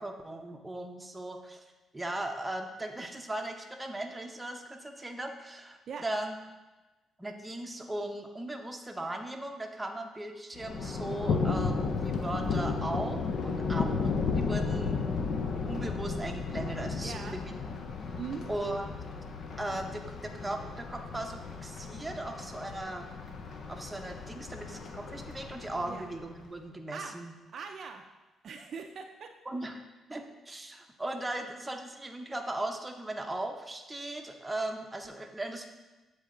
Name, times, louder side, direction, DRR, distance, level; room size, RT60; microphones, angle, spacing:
voice 1, 0.0-1.6 1.9-6.4 7.2-13.9 14.4-15.0 15.6-17.6 18.5-18.9 19.6-23.0 23.7-27.3 29.5-29.8 30.1-35.7, right 1 dB, 15° right, 3 dB, 0.7 m, -38 dB
Thunder, 10.6-26.5, left 4 dB, 60° left, 0.5 m, -34 dB
voice 2, 17.0-17.4 18.2-18.5 25.9-26.1 26.9-27.2 27.5-28.0 28.4-29.3, right 6 dB, 55° right, 4 dB, 0.4 m, -41 dB
7.9 x 3.3 x 3.8 m, 1.1 s
cardioid pair, 90°, 0 cm